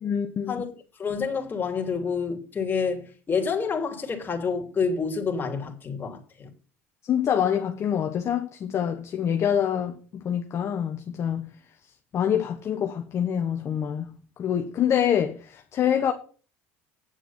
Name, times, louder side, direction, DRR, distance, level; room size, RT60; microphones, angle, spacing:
voice 1, 0.0-0.6 7.0-11.5 12.1-16.1, left 9 dB, 45° left, 1.1 m, -26 dB
voice 2, 1.0-6.5, left 5 dB, 30° left, 2.9 m, -28 dB
9.2 x 7.0 x 5.8 m
hypercardioid pair, 80°, 6 cm